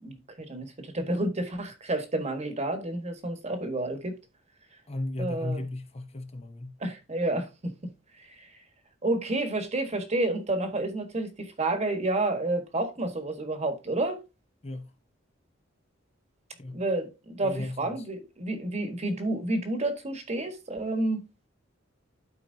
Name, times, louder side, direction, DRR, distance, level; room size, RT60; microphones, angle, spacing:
voice 1, 0.0-4.2 5.2-5.6 6.8-7.7 8.2-8.4 9.0-14.2 16.7-21.5, right 2 dB, 35° right, 1.4 m, -30 dB
voice 2, 4.9-6.8 14.6-14.9 16.5-16.8 17.4-18.0, left 2 dB, 30° left, 0.9 m, -35 dB
12.5 x 4.5 x 2.7 m
head